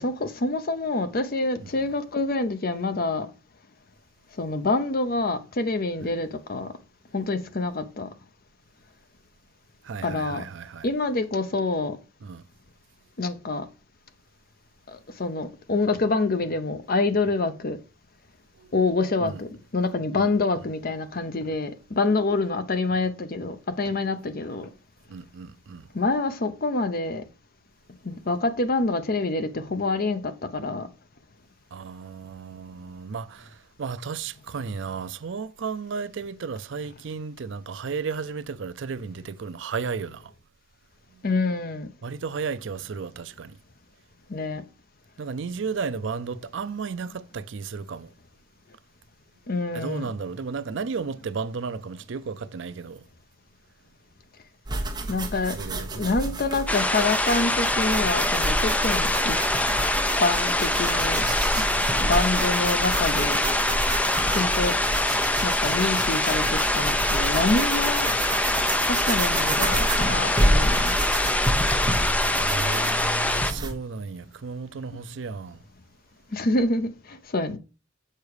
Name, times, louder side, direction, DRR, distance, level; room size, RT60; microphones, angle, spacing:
voice 1, 0.0-3.3 4.4-6.7 7.1-8.1 10.0-10.4 10.8-12.0 13.2-13.7 14.9-17.8 18.7-24.7 25.9-27.2 28.0-30.9 41.2-41.9 44.3-44.6 49.5-50.1 55.1-59.4 60.2-61.2 61.5-61.6 61.9-63.4 64.3-64.8 65.4-68.1 68.9-71.0 76.3-77.6, left 3 dB, 50° left, 0.8 m, -26 dB
voice 2, 9.8-10.9 12.2-12.4 18.6-18.7 19.2-19.4 20.2-20.7 25.1-25.9 31.7-33.5 33.8-40.2 42.0-43.6 45.2-48.1 49.7-53.0 55.5-56.4 61.7-62.0 72.4-75.6, right 5 dB, 70° right, 0.5 m, -34 dB
sound 1, 54.7-73.7, right 1 dB, 20° right, 1.2 m, -29 dB
sound 2, 56.7-73.5, left 1 dB, 5° left, 0.5 m, -24 dB
6.7 x 4.7 x 4.7 m
head